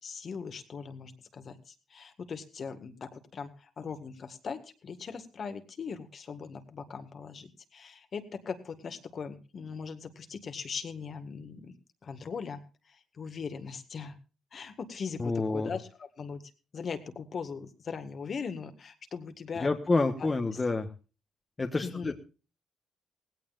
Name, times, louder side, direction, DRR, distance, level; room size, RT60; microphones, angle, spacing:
voice 1, 0.0-11.7 12.0-14.2 14.5-16.4 16.7-19.7 20.2-20.3 21.8-22.1, left 5 dB, 50° left, 8 dB, 1.8 m, -40 dB
voice 2, 15.2-15.7 19.6-20.9 21.6-22.1, left 3 dB, 25° left, 5 dB, 1.3 m, -28 dB
18.0 x 16.5 x 2.5 m, 0.33 s
cardioid pair, 90°, 0 cm